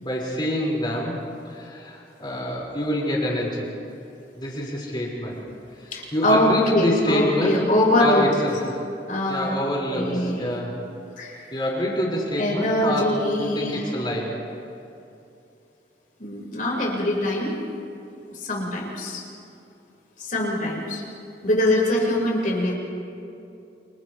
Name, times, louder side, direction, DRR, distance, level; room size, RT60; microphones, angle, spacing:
voice 1, 0.0-1.2 1.5-3.7 4.4-5.4 5.8-7.6 8.0-8.6 9.3-10.8 11.5-13.1 13.4-14.3, left 1 dB, 25° left, -4 dB, 5.5 m, -26 dB
voice 2, 5.9-8.2 9.1-9.5 9.9-10.5 11.2-11.4 12.4-13.8 16.2-17.7 18.3-19.2 20.2-21.0 21.4-22.7, left 1 dB, 50° left, -2 dB, 5.4 m, -23 dB
30.0 x 28.0 x 3.4 m, 2.7 s
head